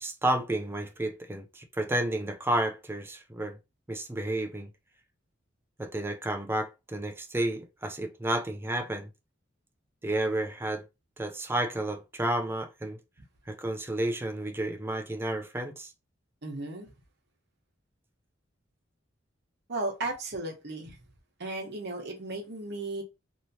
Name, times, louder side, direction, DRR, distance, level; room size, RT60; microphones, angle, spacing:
voice 1, 0.0-3.6 3.9-4.7 5.8-9.1 10.0-10.8 11.2-13.0 13.5-15.9, right 1 dB, 10° right, 0.5 m, -31 dB
voice 2, 16.4-16.9 19.7-21.0 21.4-23.0, right 2 dB, 60° right, 1.1 m, -35 dB
3.1 x 2.8 x 2.7 m
head